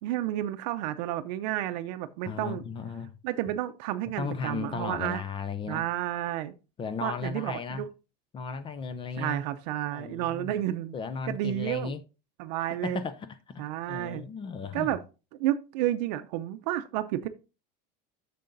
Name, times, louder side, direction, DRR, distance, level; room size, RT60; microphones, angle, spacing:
voice 1, 0.0-2.6 3.2-5.2 5.7-6.5 7.0-7.9 9.2-10.9 11.3-11.9 12.4-13.0 13.6-14.2 14.7-15.0 15.4-17.3, right 13 dB, 85° right, 0.6 m, -31 dB
voice 2, 2.3-3.1 4.2-5.9 6.8-7.8 8.3-9.4 9.9-10.6 10.9-12.0 12.6-15.0, left 5 dB, 25° left, 0.4 m, -35 dB
10.5 x 6.7 x 2.6 m
cardioid pair, 150°, 21 cm